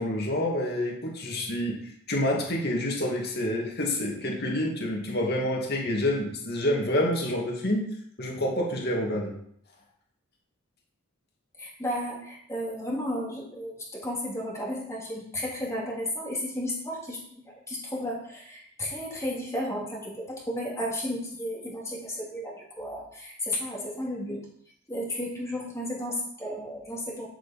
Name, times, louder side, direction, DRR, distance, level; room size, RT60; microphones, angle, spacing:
voice 1, 0.0-1.8 2.1-7.8 8.2-9.3, left 1 dB, 45° left, 0 dB, 2.4 m, -28 dB
voice 2, 11.6-17.2 17.7-24.5 24.9-27.3, left 1 dB, 15° left, -3 dB, 2.6 m, -33 dB
10.5 x 7.5 x 4.4 m, 0.67 s
head